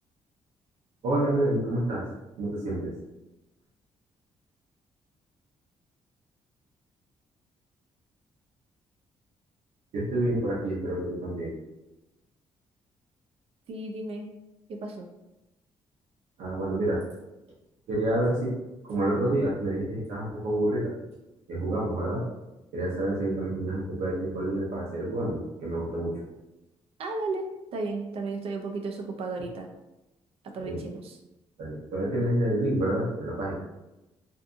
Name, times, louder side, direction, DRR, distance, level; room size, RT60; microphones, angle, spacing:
voice 1, 1.0-2.0 2.4-2.9 9.9-11.5 16.4-17.0 17.9-18.5 18.8-20.9 21.5-22.2 22.7-26.2 30.6-30.8 31.6-33.5, right 1 dB, 85° right, -6 dB, 0.7 m, -28 dB
voice 2, 13.7-14.3 14.7-15.1 27.0-27.5 27.7-29.7 30.5-31.2, right 3 dB, 60° right, 3 dB, 0.4 m, -34 dB
2.6 x 2.4 x 2.5 m, 0.97 s
cardioid pair, 110°, 11 cm